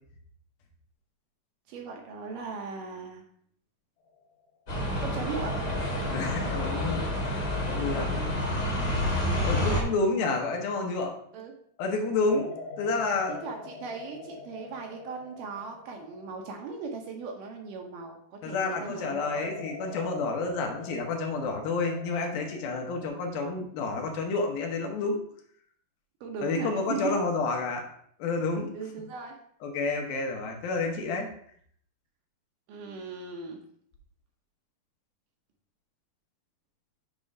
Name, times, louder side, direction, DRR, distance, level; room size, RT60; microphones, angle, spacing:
voice 1, 1.7-3.2 5.0-5.5 11.3-11.5 13.3-19.4 26.2-27.2 28.7-29.4 32.7-33.6, right 5 dB, 70° right, 2 dB, 2.2 m, -38 dB
sound 1, 4.1-4.5 5.4-11.4 12.3-18.3 19.1-23.1, left 3 dB, 60° left, 2.3 m, -44 dB
sound 2, 4.7-9.8, left 1 dB, 35° left, 1.5 m, -29 dB
voice 2, 6.1-8.3 9.4-11.1 11.8-13.4 18.4-25.2 26.4-27.9 28.2-28.7 29.6-31.3, left 3 dB, 80° left, 2 dB, 2.9 m, -30 dB
7.3 x 3.7 x 5.3 m, 0.63 s
omnidirectional pair, 4.3 m